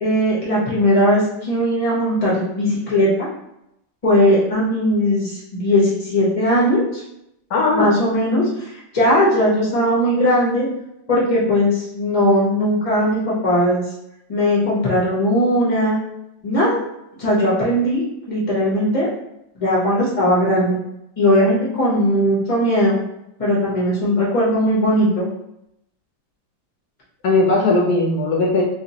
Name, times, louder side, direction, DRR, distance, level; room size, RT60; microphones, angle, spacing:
voice 1, 0.0-3.1 4.0-7.0 7.7-10.7 11.1-13.8 14.3-16.0 16.4-16.8 17.2-18.0 18.3-19.1 19.6-20.8 21.2-23.0 23.4-25.3, equal, 40° left, -7 dB, 0.5 m, -18 dB
voice 2, 7.5-7.9 27.2-28.6, left 2 dB, 75° left, 0 dB, 0.8 m, -18 dB
3.3 x 2.9 x 2.8 m, 0.82 s
omnidirectional pair, 2.1 m